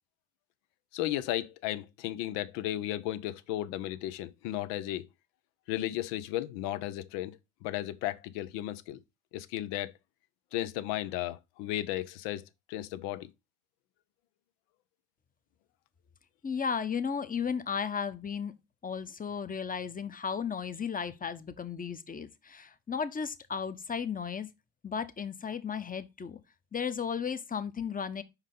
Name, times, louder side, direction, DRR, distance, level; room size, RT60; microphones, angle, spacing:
voice 1, 0.9-5.1 5.7-9.0 9.3-9.9 10.5-13.3, left 14 dB, 70° left, 0.8 m, -34 dB
voice 2, 16.4-18.5 18.8-24.5 24.8-26.4 26.7-28.2, left 6 dB, 20° left, 0.9 m, -34 dB
5.5 x 4.8 x 3.8 m
hypercardioid pair, 65°, 43 cm